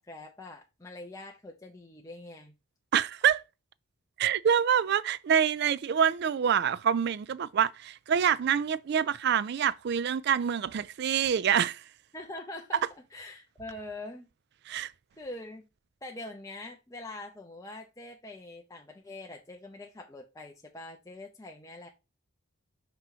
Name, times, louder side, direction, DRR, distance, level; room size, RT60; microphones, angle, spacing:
voice 1, 0.0-2.5 12.1-14.3 14.8-15.6 16.0-21.9, left 2 dB, 15° left, 0.7 m, -44 dB
voice 2, 2.9-3.4 4.2-11.8 14.7-14.9, right 8 dB, 50° right, 0.3 m, -26 dB
6.0 x 3.0 x 5.5 m
head